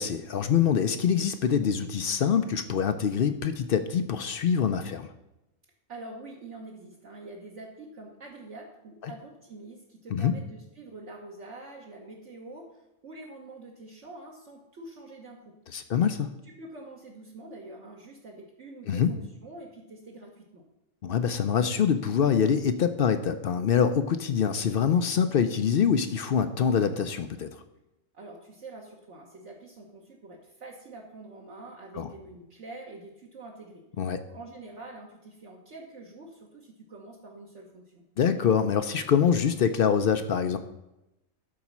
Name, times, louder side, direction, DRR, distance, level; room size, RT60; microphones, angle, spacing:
voice 1, 0.0-5.1 9.0-9.1 10.1-10.3 15.7-16.3 18.9-19.1 21.0-27.5 32.0-32.1 34.0-34.2 38.2-40.6, left 7 dB, 60° left, 9 dB, 0.6 m, -25 dB
voice 2, 5.9-15.4 15.8-15.9 16.4-20.6 28.1-33.8 34.3-38.0, right 2 dB, 60° right, -2 dB, 1.4 m, -46 dB
12.5 x 4.1 x 6.0 m, 0.91 s
omnidirectional pair, 1.4 m